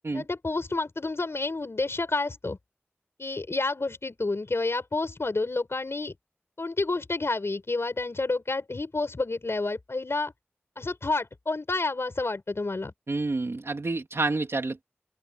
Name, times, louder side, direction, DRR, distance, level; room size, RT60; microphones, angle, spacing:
voice 1, 0.1-2.6 3.2-6.1 6.6-10.3 10.8-12.9, left 3 dB, 75° left, 5.9 m, -29 dB
voice 2, 13.1-14.8, right 3 dB, 85° right, 3.0 m, -29 dB
open air
wide cardioid pair, 50°, 4 cm